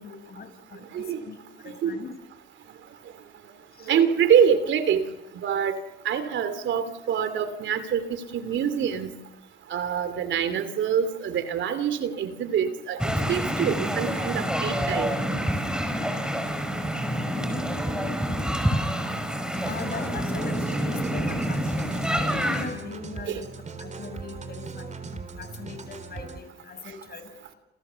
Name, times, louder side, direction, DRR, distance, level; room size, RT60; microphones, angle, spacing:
voice 1, 0.0-1.4 1.6-2.1 3.8-3.9 19.6-23.5 23.8-27.3, left 6 dB, 50° left, 8 dB, 6.5 m, -40 dB
voice 2, 0.9-1.2 1.8-2.0 3.8-5.1 5.3-5.8 6.0-9.1 9.7-13.0 13.3-15.1 23.2-23.4, right 8 dB, 70° right, 12 dB, 2.9 m, -25 dB
sound 1, 13.0-22.7, equal, 5° right, 5.6 m, -27 dB
sound 2, 19.5-26.4, right 4 dB, 35° right, 3.9 m, -40 dB
29.5 x 27.5 x 7.0 m, 1.0 s
cardioid pair, 90°, 20 cm